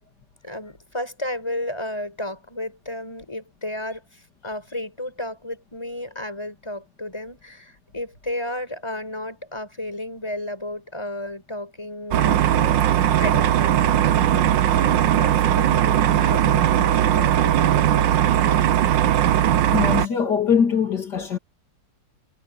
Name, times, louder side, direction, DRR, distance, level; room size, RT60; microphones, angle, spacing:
voice 1, 0.4-18.6, left 1 dB, 15° left, 6.2 m, -33 dB
sound 1, 12.1-20.1, right 11 dB, 85° right, 1.5 m, -19 dB
voice 2, 19.7-21.4, left 7 dB, 65° left, 3.1 m, -22 dB
omnidirectional pair, 2.0 m